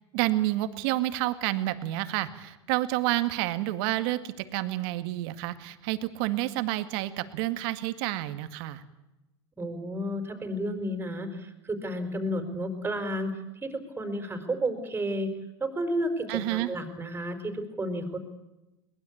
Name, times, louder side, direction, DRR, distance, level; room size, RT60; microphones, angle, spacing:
voice 1, 0.1-8.8 16.3-16.7, right 16 dB, 60° right, 11 dB, 2.0 m, -29 dB
voice 2, 9.6-13.3 13.6-15.3 15.6-18.2, right 1 dB, 15° right, 7 dB, 4.9 m, -32 dB
23.0 x 20.0 x 8.7 m, 0.98 s
hypercardioid pair, 105°, 14 cm